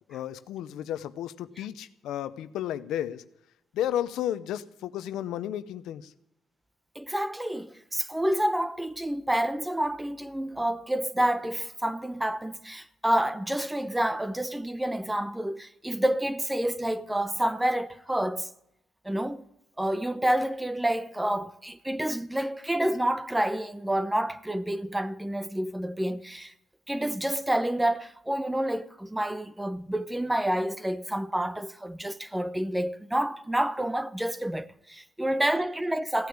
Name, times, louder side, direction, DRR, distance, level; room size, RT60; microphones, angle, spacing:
voice 1, 0.1-3.2 3.7-6.1, left 11 dB, 85° left, 0.7 m, -33 dB
voice 2, 7.0-18.5 19.0-19.4 19.8-26.5 26.9-36.3, right 1 dB, 10° right, 0.8 m, -28 dB
16.5 x 9.5 x 8.7 m
cardioid pair, 90°, 0 cm